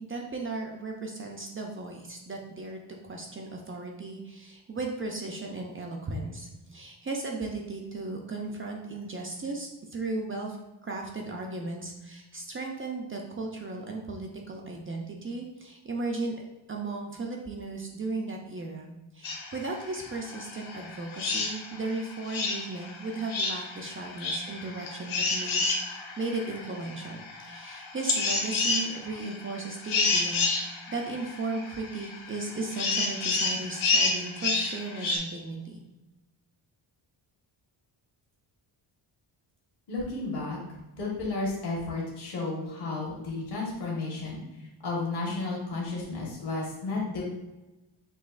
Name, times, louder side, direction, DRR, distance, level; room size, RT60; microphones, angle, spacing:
voice 1, 0.0-16.3 16.7-35.8, right 3 dB, 30° right, 0 dB, 0.4 m, -36 dB
sound 1, 19.2-35.2, left 3 dB, 80° left, 0.9 m, -30 dB
voice 2, 39.9-40.6 40.9-44.4 44.8-47.2, left 3 dB, 55° left, -4 dB, 1.3 m, -32 dB
6.1 x 2.8 x 2.4 m, 1.0 s
wide cardioid pair, 165°, 47 cm